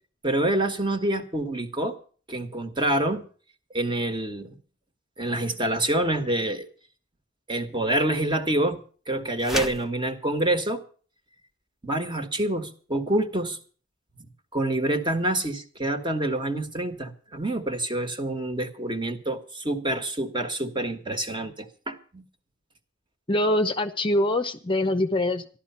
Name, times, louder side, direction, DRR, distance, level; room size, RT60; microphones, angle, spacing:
voice 1, 0.2-2.0 2.3-3.3 3.7-4.5 5.2-6.7 7.5-8.8 9.1-10.8 11.8-13.6 14.5-22.2, right 1 dB, 25° right, 7 dB, 1.5 m, -27 dB
sound 1, 9.4-9.9, equal, ahead, 0.7 m, -30 dB
voice 2, 23.3-25.6, left 1 dB, 25° left, 8 dB, 0.8 m, -24 dB
14.0 x 12.0 x 5.7 m, 0.41 s
head